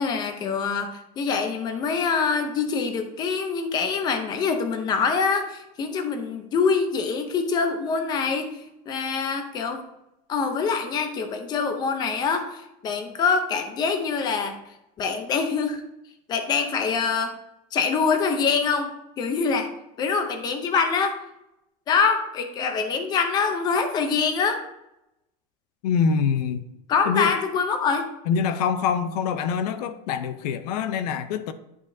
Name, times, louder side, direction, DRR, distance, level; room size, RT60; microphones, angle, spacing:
voice 1, 0.0-8.5 8.9-9.8 10.3-14.6 15.0-15.8 16.3-17.3 17.7-18.9 19.2-19.7 20.0-21.2 21.9-24.6 26.9-28.0, left 5 dB, 20° left, 0.7 m, -24 dB
voice 2, 25.8-26.6 27.1-27.3 28.3-31.5, left 6 dB, 85° left, 0.7 m, -25 dB
11.0 x 5.1 x 2.7 m
supercardioid pair, 175°, 20 cm